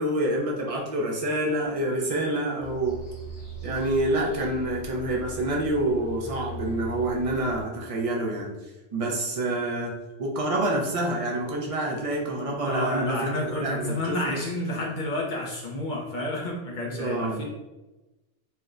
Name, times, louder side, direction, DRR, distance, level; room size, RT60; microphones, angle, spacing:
voice 1, 0.0-3.0 3.6-8.5 8.9-9.9 10.2-14.2 16.9-17.4, right 1 dB, 45° right, -1 dB, 0.5 m, -27 dB
sound 1, 2.6-7.6, right 1 dB, 75° left, 1.8 m, -40 dB
voice 2, 12.7-17.4, left 1 dB, 55° left, -3 dB, 0.6 m, -30 dB
4.3 x 2.1 x 2.4 m, 1.1 s
omnidirectional pair, 1.2 m